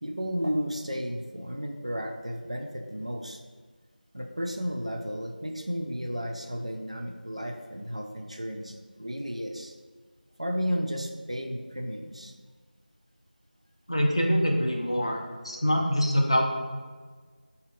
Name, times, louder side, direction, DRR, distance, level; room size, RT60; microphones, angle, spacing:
voice 1, 0.0-3.4 4.1-9.7 10.4-12.3, equal, 40° right, 3 dB, 0.3 m, -33 dB
voice 2, 13.9-15.2 15.4-16.5, equal, 35° left, 0 dB, 0.5 m, -24 dB
4.6 x 2.8 x 3.7 m, 1.5 s
figure-of-eight pair, 175°, 5 cm